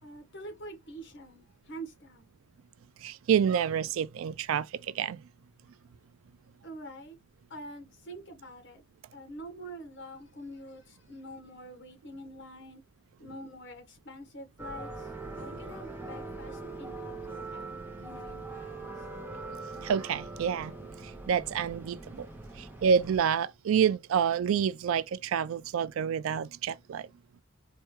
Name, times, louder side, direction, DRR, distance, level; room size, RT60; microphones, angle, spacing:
voice 1, 0.0-2.3 6.6-7.2 7.5-8.8 9.1-12.8 13.2-19.0 22.5-22.7, right 1 dB, 55° left, 1.2 m, -46 dB
voice 2, 3.0-5.2 19.8-20.7 21.0-22.3 22.6-27.1, right 7 dB, 70° right, 0.3 m, -28 dB
sound 1, 14.6-23.2, right 3 dB, 10° right, 0.7 m, -42 dB
4.5 x 2.3 x 3.0 m
head